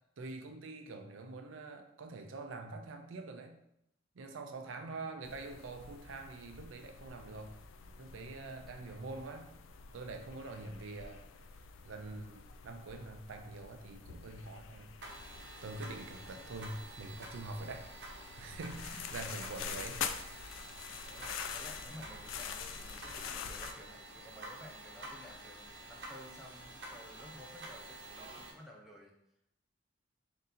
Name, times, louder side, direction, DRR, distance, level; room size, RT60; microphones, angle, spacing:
voice 1, 0.2-3.6 4.2-7.6 8.0-9.5 9.9-11.2 11.8-14.9 15.6-20.0, right 3 dB, 80° right, 6 dB, 0.5 m, -45 dB
voice 2, 4.6-5.0 8.7-9.1 10.5-10.8 15.9-16.3 18.9-19.6 20.0-20.2 21.1-29.1, equal, ahead, -3 dB, 0.5 m, -54 dB
sound 1, 5.2-23.7, left 7 dB, 80° left, 0.3 m, -46 dB
sound 2, 15.0-28.5, right 2 dB, 60° right, 0.9 m, -49 dB
3.7 x 2.7 x 4.1 m, 0.80 s
head